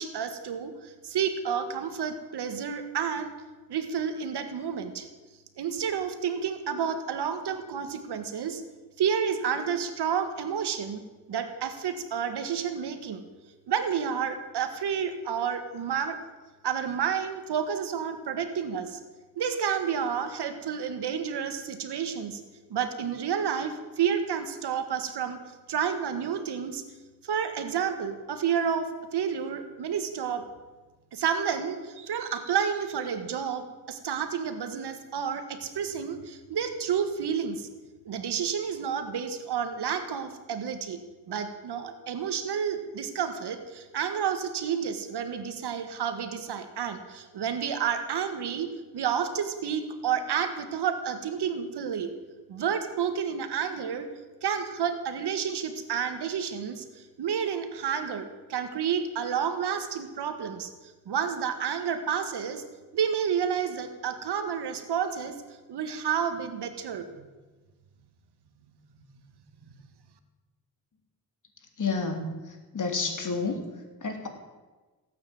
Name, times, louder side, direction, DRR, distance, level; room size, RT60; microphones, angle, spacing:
voice 1, 0.0-3.3 3.7-5.1 5.6-8.6 9.0-11.0 11.3-13.2 13.7-16.2 16.6-19.0 19.4-22.4 22.7-25.4 25.7-26.8 27.2-30.4 31.1-37.7 38.1-41.0 41.3-52.1 52.5-54.1 54.4-56.9 57.2-60.7 61.1-62.6 62.9-65.4 65.7-67.3, right 7 dB, 90° right, 8 dB, 1.8 m, -30 dB
voice 2, 71.8-74.3, left 4 dB, 50° left, 4 dB, 3.4 m, -31 dB
17.5 x 8.7 x 8.9 m, 1.2 s
cardioid pair, 80°, 39 cm